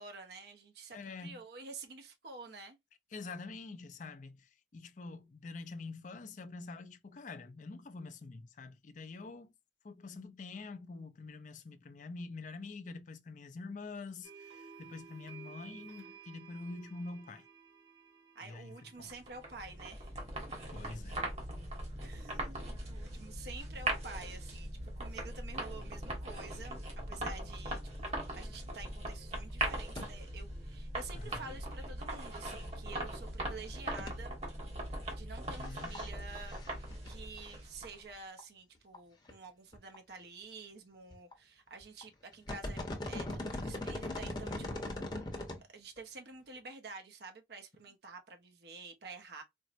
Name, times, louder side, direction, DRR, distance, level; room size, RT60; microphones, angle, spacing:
voice 1, 0.0-2.8 18.3-20.1 22.0-34.4 35.1-42.8 43.1-45.2 45.7-49.4, right 4 dB, 60° right, 0.6 m, -49 dB
voice 2, 0.9-1.4 3.1-9.5 9.8-17.4 18.4-19.1 20.7-21.2 31.1-31.5 35.5-36.0, left 3 dB, 45° left, 0.4 m, -46 dB
sound 1, 14.2-19.5, right 6 dB, 80° right, 1.2 m, -54 dB
sound 2, 19.1-38.1, right 1 dB, 35° right, 1.1 m, -40 dB
sound 3, 29.2-29.3 29.5-29.7 30.0-30.1 30.3-30.4 32.7-32.8 34.0-34.1 35.7-36.1 36.3-37.1 37.5-37.6 38.4-38.5 38.9-39.0 39.3-39.4 39.7-40.1 41.1-41.3 41.8-42.0 42.3-45.6 46.0-46.1, left 1 dB, 25° left, 0.8 m, -39 dB
4.3 x 2.0 x 2.5 m
head